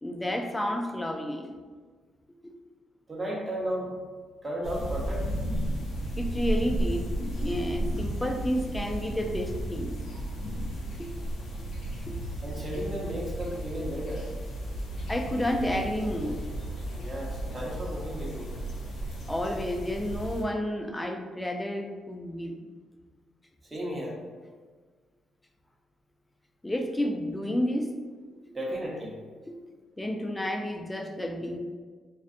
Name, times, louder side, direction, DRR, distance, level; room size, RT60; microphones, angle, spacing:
voice 1, 0.0-1.5 2.4-2.5 6.2-10.0 11.0-11.1 12.0-12.2 15.1-16.4 19.3-22.7 26.6-27.9 28.5-28.6 29.5-29.6 30.0-31.6, left 1 dB, 15° left, 4 dB, 0.3 m, -31 dB
voice 2, 3.1-3.9 4.4-5.6 12.4-14.3 16.9-18.6 23.7-24.2 28.5-29.2, equal, 25° right, -3 dB, 0.7 m, -34 dB
sound 1, 4.6-20.4, right 1 dB, 70° left, 0.6 m, -34 dB
2.4 x 2.2 x 2.5 m, 1.5 s
supercardioid pair, 55°, 0 cm